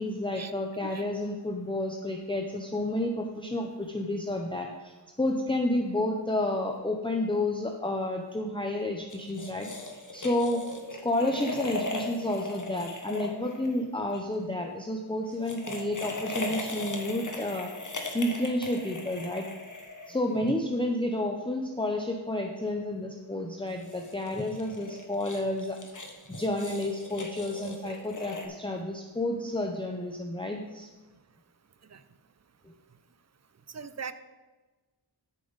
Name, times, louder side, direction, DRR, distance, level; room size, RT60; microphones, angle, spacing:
voice 1, 0.0-9.7 10.1-10.6 11.0-17.7 18.1-19.5 20.1-25.8 26.3-30.9 32.7-32.8, left 1 dB, 10° left, 2 dB, 0.7 m, -30 dB
sound 1, 9.1-14.2 15.3-20.5 23.7-28.5, left 2 dB, 45° left, 1.3 m, -38 dB
voice 2, 33.7-34.1, right 6 dB, 40° right, 12 dB, 0.6 m, -39 dB
12.5 x 7.0 x 4.0 m, 1.2 s
wide cardioid pair, 65°, 43 cm